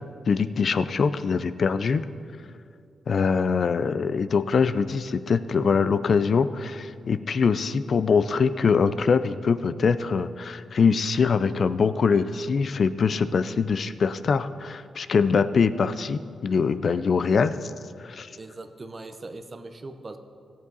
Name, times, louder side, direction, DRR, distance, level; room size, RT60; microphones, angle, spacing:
voice 1, 0.3-2.0 3.1-17.6 18.0-18.3, left 5 dB, 55° left, 13 dB, 0.4 m, -23 dB
voice 2, 18.4-20.2, right 2 dB, 35° right, 7 dB, 0.8 m, -40 dB
17.0 x 7.4 x 4.1 m, 2.4 s
cardioid pair, 95°, 0 cm